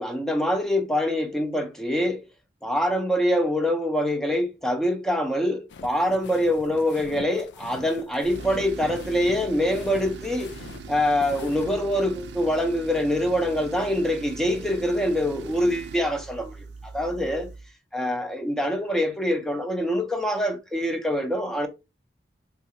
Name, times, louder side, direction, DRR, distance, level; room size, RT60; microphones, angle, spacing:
voice 1, 0.0-2.2 2.6-10.6 10.9-17.5 17.9-21.7, equal, 5° left, 0.5 m, -25 dB
sound 1, 5.7-11.7, left 5 dB, 75° left, 0.4 m, -43 dB
Tools, 8.2-17.7, right 4 dB, 70° right, 0.4 m, -41 dB
3.9 x 2.4 x 2.7 m
head